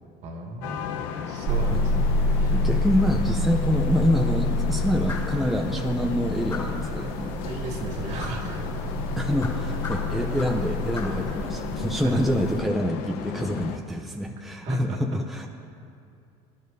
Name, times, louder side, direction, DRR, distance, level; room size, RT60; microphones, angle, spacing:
voice 1, 0.2-0.9 1.3-2.0 2.3-2.6 7.4-8.6 10.1-10.2 12.0-12.2 14.6-15.0, right 1 dB, 50° right, 1 dB, 2.0 m, -34 dB
sound 1, 0.6-13.8, left 7 dB, 75° left, 0.9 m, -34 dB
sound 2, 1.4-12.6, left 1 dB, 70° right, 1.4 m, -28 dB
voice 2, 1.7-2.0 2.5-7.3 9.2-15.5, equal, ahead, 1 dB, 0.7 m, -26 dB
sound 3, 5.1-5.4 6.5-6.9 8.2-8.4 9.4-10.7 10.9-11.2, left 4 dB, 25° left, 2.7 m, -37 dB
23.5 x 11.5 x 2.7 m, 2.5 s
cardioid pair, 135°, 15 cm